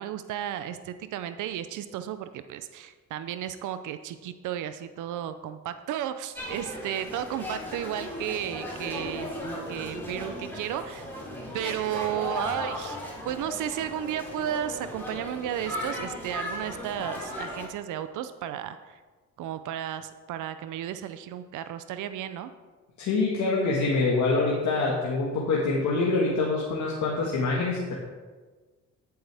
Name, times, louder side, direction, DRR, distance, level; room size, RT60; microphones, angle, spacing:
voice 1, 0.0-9.3 9.7-11.1 11.5-13.0 13.2-19.0 19.4-22.5, right 11 dB, 80° right, 11 dB, 0.6 m, -33 dB
sound 1, 6.3-17.7, left 1 dB, 5° left, 3.7 m, -36 dB
voice 2, 23.0-28.0, left 3 dB, 70° left, -4 dB, 1.7 m, -25 dB
13.5 x 7.9 x 3.5 m, 1.3 s
cardioid pair, 90°, 30 cm